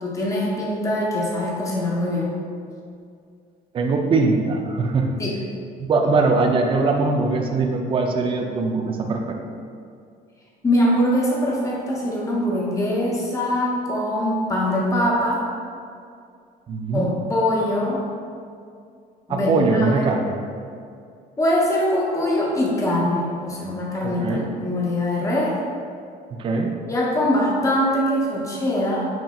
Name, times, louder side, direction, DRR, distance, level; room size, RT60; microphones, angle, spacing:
voice 1, 0.0-2.3 5.2-5.3 10.6-15.5 16.9-18.0 19.3-19.5 20.0-20.1 21.4-25.6 26.9-29.1, left 1 dB, 20° left, -4 dB, 0.8 m, -22 dB
voice 2, 3.7-5.1 5.8-9.4 16.7-17.1 19.3-20.3 24.0-24.5 26.3-26.7, right 3 dB, 30° right, 3 dB, 0.4 m, -21 dB
5.8 x 2.7 x 2.3 m, 2.3 s
cardioid pair, 110°, 17 cm